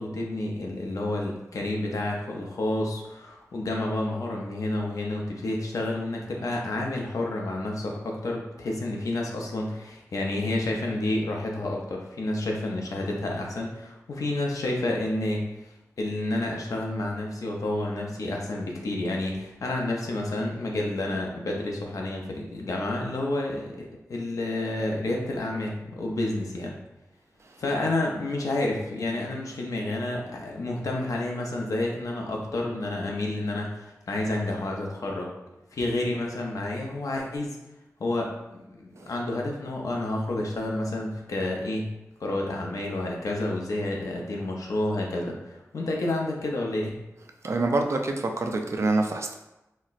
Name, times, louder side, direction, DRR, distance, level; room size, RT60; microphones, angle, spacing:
voice 1, 0.0-15.4 16.0-26.7 27.6-35.3 35.7-37.6 38.0-41.9 42.2-47.0, left 2 dB, 85° left, 0 dB, 0.5 m, -30 dB
voice 2, 47.4-49.3, right 2 dB, 55° right, 4 dB, 0.4 m, -26 dB
4.1 x 2.0 x 2.4 m, 0.96 s
wide cardioid pair, 70°, 6 cm